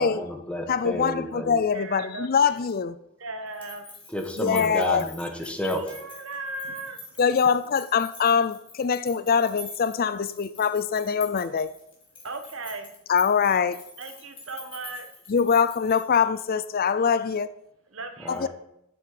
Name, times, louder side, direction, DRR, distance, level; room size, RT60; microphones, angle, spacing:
voice 1, 0.0-1.6 4.1-5.8 18.2-18.5, equal, 5° left, 1.6 m, -31 dB
voice 2, 0.7-3.0 4.4-5.1 7.2-11.7 13.1-13.8 15.3-17.5 18.3-18.5, left 6 dB, 45° left, 0.5 m, -23 dB
voice 3, 1.7-2.7 3.2-4.0 5.4-7.2 12.2-12.9 14.0-15.1 17.9-18.5, right 2 dB, 75° right, 1.5 m, -37 dB
sound 1, 3.5-16.5, left 3 dB, 25° left, 3.5 m, -46 dB
8.8 x 7.5 x 7.9 m
head